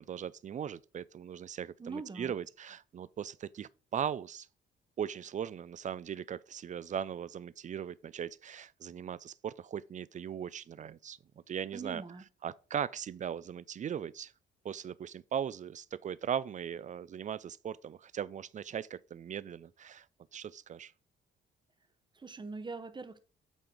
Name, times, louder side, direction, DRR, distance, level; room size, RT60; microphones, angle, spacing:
voice 1, 0.0-4.5 5.0-11.2 11.5-12.0 12.4-14.3 14.6-20.1 20.3-20.9, right 8 dB, 40° right, 0.4 m, -39 dB
voice 2, 1.8-2.4 11.7-12.2 22.2-23.2, right 4 dB, 25° right, 0.9 m, -42 dB
8.5 x 3.7 x 5.0 m
cardioid pair, 90°, 20 cm